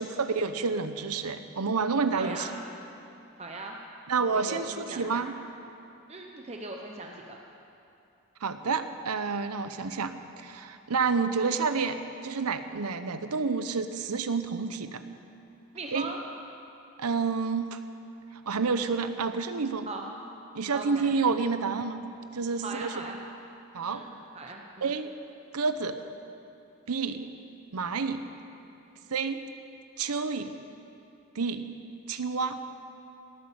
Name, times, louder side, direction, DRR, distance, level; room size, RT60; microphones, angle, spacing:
voice 1, 0.0-2.5 4.1-5.3 8.4-12.0 12.2-15.0 15.9-16.1 17.0-17.8 18.5-19.9 20.5-22.0 22.3-23.0 23.7-24.0 24.8-25.1 25.5-26.0 26.9-27.3 27.7-28.2 29.1-29.4 30.0-30.5 31.4-31.6 32.1-32.6, right 4 dB, 85° right, 10 dB, 0.8 m, -29 dB
voice 2, 2.1-2.5 3.4-3.8 4.3-5.3 6.1-7.4 15.7-16.2 19.9-20.1 20.7-21.1 22.6-23.2 23.9-24.9, right 2 dB, 30° right, 1 dB, 0.7 m, -39 dB
18.0 x 8.7 x 7.1 m, 2.8 s
head